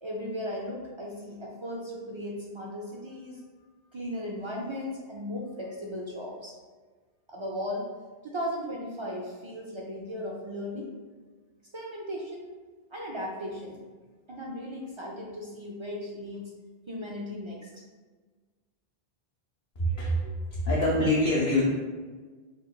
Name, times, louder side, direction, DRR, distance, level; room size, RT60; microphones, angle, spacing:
voice 1, 0.0-3.4 3.9-6.5 7.3-7.9 8.2-10.9 11.7-12.5 12.9-13.8 14.3-16.4 16.9-17.7, equal, 50° right, -2 dB, 0.3 m, -36 dB
voice 2, 19.8-21.6, left 1 dB, 50° left, -6 dB, 0.8 m, -25 dB
4.3 x 3.2 x 2.3 m, 1.4 s
omnidirectional pair, 1.1 m